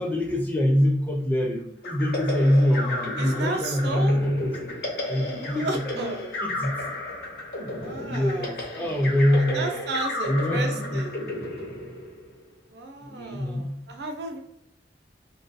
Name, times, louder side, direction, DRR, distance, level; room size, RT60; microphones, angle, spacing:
voice 1, 0.0-4.7 5.0-6.1 6.4-6.7 7.9-9.7 10.3-11.0 13.1-13.7, left 1 dB, 10° left, 0 dB, 0.4 m, -24 dB
sound 1, 1.8-12.4, left 1 dB, 60° left, 0.7 m, -33 dB
voice 2, 3.2-4.2 5.4-6.3 7.8-8.5 9.3-11.2 12.7-14.4, right 2 dB, 70° right, 4 dB, 0.4 m, -33 dB
2.3 x 2.2 x 2.5 m, 0.74 s
head